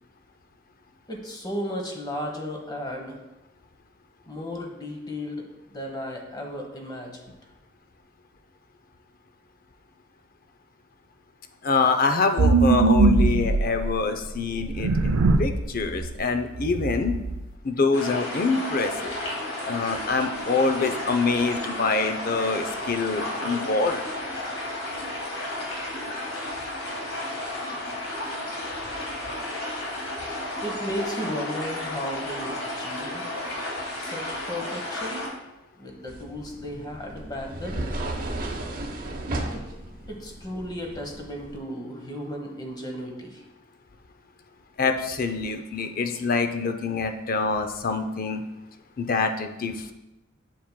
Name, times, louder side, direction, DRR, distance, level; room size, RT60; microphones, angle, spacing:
voice 1, 1.1-3.2 4.3-7.2 30.6-33.2 34.0-35.3 35.8-37.9 39.5-39.6 40.1-43.4, equal, 20° left, 1 dB, 1.0 m, -34 dB
voice 2, 11.6-17.2 17.6-19.2 19.7-24.0 44.8-48.4 49.0-49.9, left 4 dB, 45° left, 7 dB, 0.5 m, -25 dB
sound 1, 12.4-13.9 14.6-15.6 16.0-16.1 16.5-17.4, right 3 dB, 85° right, 0.5 m, -21 dB
sound 2, 17.9-35.3, left 1 dB, 80° left, 2.1 m, -33 dB
sound 3, 36.1-41.6, right 1 dB, 45° right, 0.9 m, -34 dB
7.4 x 7.1 x 2.2 m, 0.97 s
head